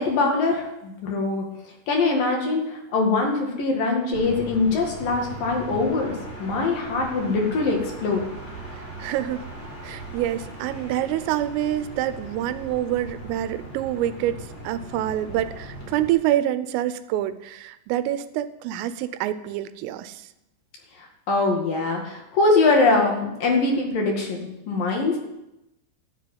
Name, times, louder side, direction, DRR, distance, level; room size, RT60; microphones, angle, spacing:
voice 1, 0.0-1.4 1.9-8.2 21.0-25.2, left 3 dB, 55° left, 1 dB, 3.1 m, -23 dB
sound 1, 4.1-16.1, right 1 dB, 15° left, 3.2 m, -39 dB
voice 2, 8.7-9.5 9.8-14.4 14.6-20.3, right 12 dB, 85° right, 13 dB, 3.3 m, -26 dB
13.0 x 7.8 x 9.3 m, 0.90 s
omnidirectional pair, 5.8 m